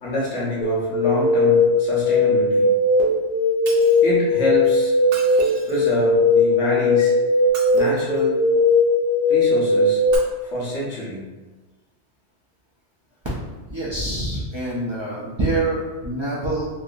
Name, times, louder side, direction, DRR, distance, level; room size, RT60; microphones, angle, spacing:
voice 1, 0.0-2.7 4.0-4.9 5.6-7.1 7.7-8.4 9.3-10.0 10.4-11.2, left 1 dB, 80° left, -6 dB, 1.2 m, -26 dB
sound 1, 0.6-10.2, left 2 dB, 55° left, 0.9 m, -18 dB
Shatter, 3.7-4.1 5.0-6.0 7.4-8.3 10.0-10.2, right 3 dB, 80° right, 0.9 m, -38 dB
voice 2, 13.7-16.7, right 2 dB, 35° right, -8 dB, 0.5 m, -25 dB
3.1 x 2.7 x 2.4 m, 1.2 s
omnidirectional pair, 1.2 m